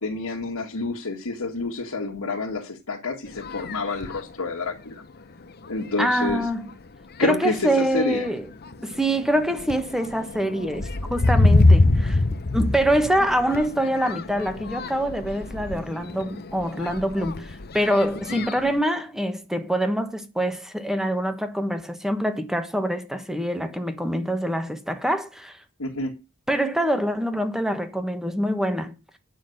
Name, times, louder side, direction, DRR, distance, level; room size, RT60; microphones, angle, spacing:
voice 1, 0.0-5.0 5.7-6.5 7.2-8.3 18.3-18.4 25.8-26.1, left 3 dB, 75° left, 1.8 m, -28 dB
sound 1, 3.3-4.3 5.0-5.1 5.6-5.9 6.2-6.8 7.5-7.7 8.1-18.8, left 2 dB, 50° left, 0.9 m, -25 dB
voice 2, 6.0-6.7 7.2-8.5 8.8-12.2 12.5-25.6 26.5-29.0, right 1 dB, ahead, 1.2 m, -25 dB
9.4 x 6.2 x 7.9 m
head